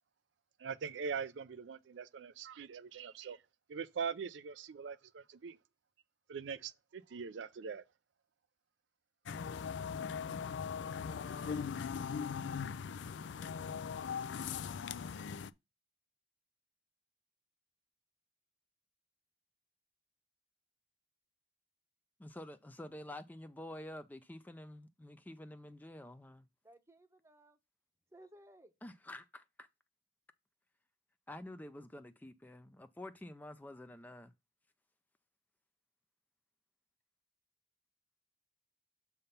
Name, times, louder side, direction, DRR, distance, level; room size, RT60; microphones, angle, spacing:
voice 1, 0.6-3.4 3.7-5.6 6.3-7.8, right 6 dB, 80° right, 0.4 m, -42 dB
sound 1, 9.3-15.5, left 6 dB, 80° left, 0.4 m, -40 dB
voice 2, 22.2-26.5 28.8-29.7 31.3-34.3, left 1 dB, 10° left, 0.4 m, -49 dB
voice 3, 26.6-27.6 28.1-28.7, right 1 dB, 15° right, 0.8 m, -59 dB
6.8 x 3.5 x 5.5 m
head